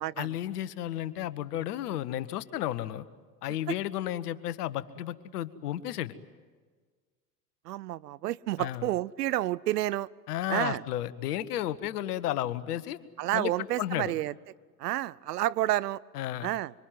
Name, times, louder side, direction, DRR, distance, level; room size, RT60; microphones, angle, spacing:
voice 1, 0.2-3.0 3.4-6.1 8.6-8.8 10.3-13.0 13.3-13.5 13.8-14.1 16.1-16.5, left 12 dB, 65° left, 14 dB, 1.4 m, -33 dB
voice 2, 7.7-10.1 10.5-10.8 13.2-14.3 14.8-16.0 16.4-16.7, right 15 dB, 70° right, 20 dB, 0.7 m, -30 dB
25.5 x 24.5 x 9.3 m, 1.5 s
figure-of-eight pair, 85°, 50 cm